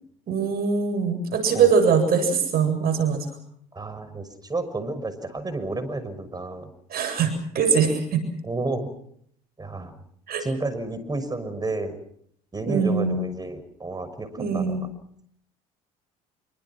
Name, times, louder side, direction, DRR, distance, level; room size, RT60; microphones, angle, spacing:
voice 1, 0.3-3.2 6.9-8.2 10.3-10.4 12.7-13.2 14.4-14.8, right 6 dB, 55° right, 8 dB, 7.9 m, -22 dB
voice 2, 3.7-6.7 8.4-8.9 9.6-10.0 10.4-12.0 12.5-14.9, right 2 dB, 20° right, 11 dB, 6.2 m, -31 dB
27.0 x 25.0 x 6.1 m, 0.66 s
supercardioid pair, 75°, 19 cm